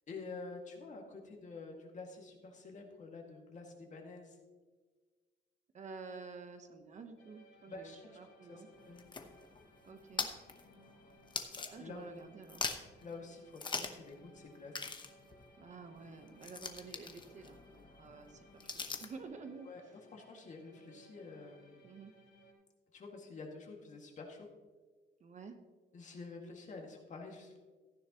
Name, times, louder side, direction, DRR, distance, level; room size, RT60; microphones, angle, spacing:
voice 1, 0.1-4.4 7.7-9.0 11.5-12.1 13.0-14.7 19.6-19.8 20.1-22.0 22.9-24.5 25.9-27.6, left 3 dB, 40° left, 1 dB, 2.0 m, -49 dB
voice 2, 5.7-8.7 9.9-10.3 11.7-12.7 15.6-19.7 21.8-22.1 25.2-25.6, right 4 dB, 40° right, 7 dB, 0.9 m, -50 dB
sound 1, 7.2-22.5, left 1 dB, 70° left, 3.6 m, -63 dB
sound 2, 8.7-12.2 12.4-13.0 13.6-14.1 14.4-14.5 14.7-19.2, left 4 dB, 25° left, 0.9 m, -43 dB
15.0 x 10.0 x 2.9 m, 1.4 s
cardioid pair, 155°, 19 cm